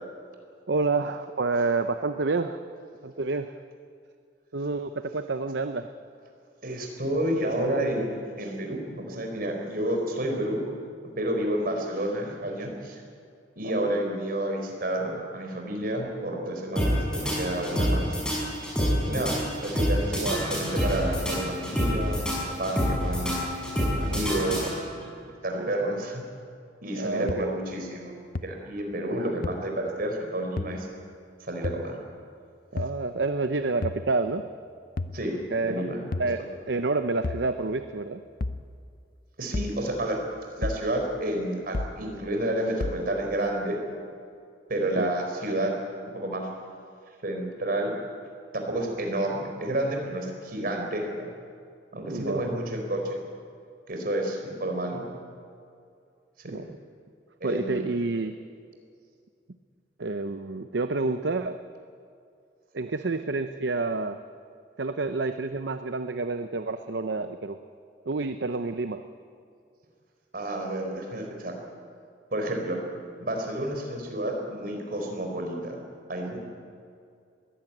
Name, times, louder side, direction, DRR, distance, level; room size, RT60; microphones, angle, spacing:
voice 1, 0.7-2.6 3.0-3.5 4.5-5.9 13.6-13.9 19.0-19.2 20.1-20.4 24.5-24.7 25.5-26.0 26.9-27.6 29.1-29.3 32.7-34.5 35.5-35.8 36.2-38.2 45.0-45.1 52.1-52.5 56.5-56.8 57.4-58.3 60.0-61.6 62.7-64.2 64.8-67.6 68.0-69.0, right 3 dB, 70° right, 9 dB, 0.7 m, -29 dB
voice 2, 6.6-10.6 11.2-13.0 13.6-18.2 19.0-19.4 19.6-23.4 24.0-24.7 25.0-25.1 25.4-26.2 26.8-28.1 28.4-30.9 31.4-32.0 35.1-36.0 39.4-40.2 40.6-43.8 44.7-45.8 46.1-46.5 47.2-47.9 48.5-51.3 51.9-53.2 53.9-55.0 56.4-56.6 57.4-57.9 70.3-71.5 72.3-72.8 73.2-75.8 76.1-76.4, right 1 dB, 50° right, 2 dB, 4.3 m, -30 dB
sound 1, 16.8-25.1, equal, 5° left, 6.1 m, -27 dB
sound 2, 27.3-27.4 28.3-28.4 29.4-29.5 30.6-30.7 31.6-31.8 32.8-33.0 33.8-34.0 35.0-35.2 36.1-36.3 37.2-37.5 38.4-38.6 39.5-39.8 40.6-40.8 41.7-42.0 42.8-43.0, left 2 dB, 50° left, 0.7 m, -30 dB
21.5 x 16.0 x 9.1 m, 2.4 s
head